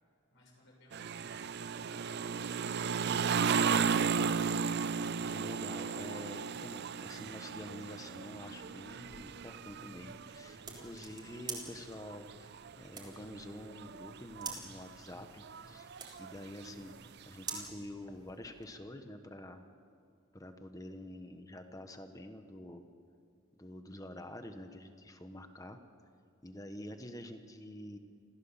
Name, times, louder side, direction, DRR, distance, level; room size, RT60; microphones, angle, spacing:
voice 1, 0.0-3.9, left 1 dB, 55° left, -1 dB, 6.6 m, -61 dB
sound 1, 0.9-10.8 11.3-12.7 13.4-13.5 13.7-14.6 15.4-16.9 17.5-17.6, right 6 dB, 50° right, 0.5 m, -35 dB
voice 2, 5.2-15.9 16.2-17.0 17.3-19.6 20.3-22.8 23.6-25.8 26.4-28.0, left 1 dB, 15° left, 7 dB, 1.3 m, -47 dB
sound 2, 8.4-18.7, right 4 dB, 20° right, 3.5 m, -49 dB
27.0 x 16.0 x 7.4 m, 2.3 s
head